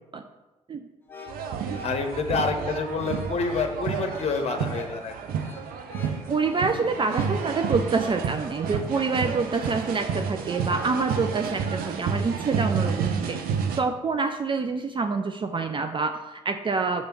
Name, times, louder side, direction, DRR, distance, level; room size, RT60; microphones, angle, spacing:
sound 1, 1.0-8.0, left 3 dB, 15° left, 1.7 m, -46 dB
sound 2, 1.3-13.8, right 6 dB, 65° right, 0.7 m, -30 dB
voice 1, 1.8-5.3, left 4 dB, 40° left, 5 dB, 1.0 m, -28 dB
voice 2, 6.3-13.4 13.8-17.1, right 4 dB, 30° right, 7 dB, 0.5 m, -27 dB
6.4 x 3.4 x 6.0 m, 1.1 s
hypercardioid pair, 50°, 16 cm